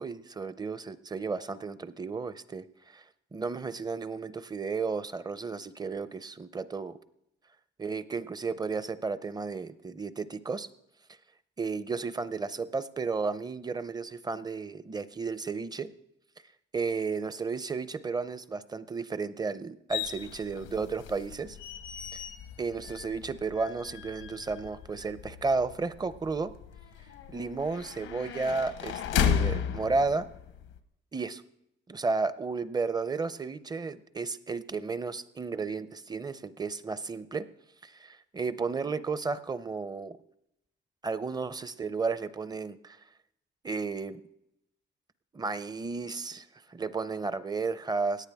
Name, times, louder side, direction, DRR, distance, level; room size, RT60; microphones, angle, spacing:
voice 1, 0.0-2.6 2.9-3.0 3.3-7.0 7.8-10.7 11.6-15.9 16.7-21.6 22.6-26.5 27.3-30.3 31.1-31.4 31.9-37.5 37.8-40.2 41.0-43.0 43.6-44.2 45.3-48.3, right 4 dB, 20° right, 15 dB, 0.6 m, -33 dB
sound 1, 19.9-30.8, left 8 dB, 90° left, 0.9 m, -35 dB
17.5 x 9.8 x 3.5 m, 0.81 s
cardioid pair, 90°, 20 cm